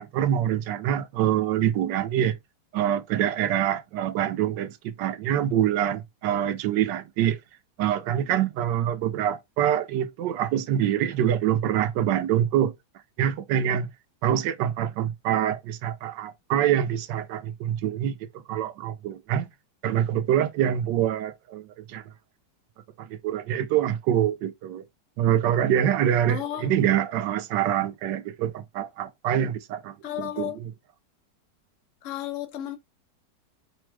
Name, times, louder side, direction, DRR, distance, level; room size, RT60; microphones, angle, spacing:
voice 1, 0.0-2.4 2.7-7.4 7.8-12.7 13.2-13.9 14.2-19.5 19.8-22.0 23.0-24.8 25.2-30.5, right 10 dB, 85° right, 1.2 m, -25 dB
voice 2, 26.3-26.7 30.0-30.6 32.0-32.8, left 12 dB, 55° left, 1.1 m, -33 dB
5.1 x 2.1 x 4.5 m
omnidirectional pair, 1.9 m